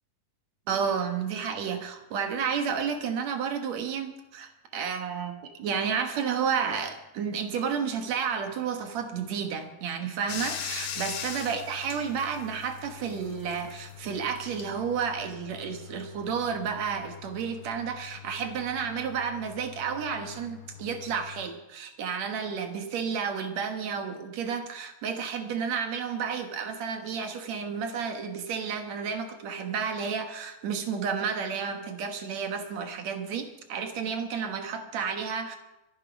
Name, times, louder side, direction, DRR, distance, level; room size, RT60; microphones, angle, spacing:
voice 1, 0.7-35.6, right 6 dB, 60° right, 6 dB, 2.3 m, -31 dB
Bathtub (filling or washing), 10.3-21.5, left 8 dB, 60° left, 1.4 m, -42 dB
24.5 x 9.1 x 5.2 m, 0.96 s
omnidirectional pair, 3.9 m